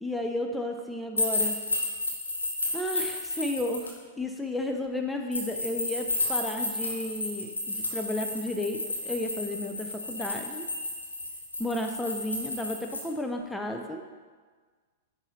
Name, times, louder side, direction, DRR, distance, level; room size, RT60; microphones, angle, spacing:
voice 1, 0.0-1.6 2.7-10.7 11.6-14.0, left 1 dB, 5° left, 3 dB, 0.5 m, -33 dB
sound 1, 1.2-3.9 5.3-13.0, left 2 dB, 85° left, 1.2 m, -32 dB
10.5 x 4.0 x 3.1 m, 1.5 s
figure-of-eight pair, 105°, 0 cm